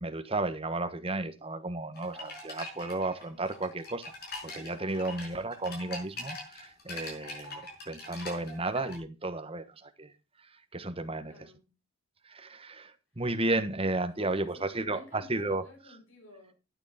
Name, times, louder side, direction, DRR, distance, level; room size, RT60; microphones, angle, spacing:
voice 1, 0.0-4.0 4.4-10.1 10.7-11.3 12.2-15.6, right 2 dB, 25° right, 1.3 m, -33 dB
sound 1, 1.9-9.0, left 2 dB, 50° left, 5.5 m, -43 dB
voice 2, 11.3-11.8 14.2-16.5, left 3 dB, 70° left, 5.8 m, -53 dB
12.5 x 9.3 x 4.2 m
head